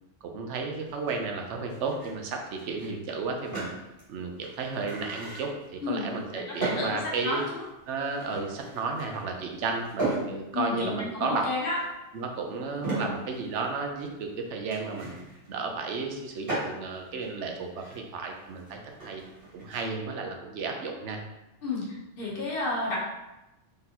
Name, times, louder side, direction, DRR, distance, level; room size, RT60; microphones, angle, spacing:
voice 1, 0.2-3.7 4.1-7.4 7.9-11.4 12.1-15.1 15.5-19.2 19.5-21.2, right 4 dB, 80° right, 2 dB, 1.0 m, -33 dB
sound 1, 0.9-19.9, right 2 dB, 50° right, 1.7 m, -39 dB
voice 2, 6.3-7.6 10.5-11.8 21.6-23.0, left 3 dB, 55° left, -4 dB, 1.1 m, -31 dB
3.9 x 3.4 x 2.8 m, 0.96 s
omnidirectional pair, 1.2 m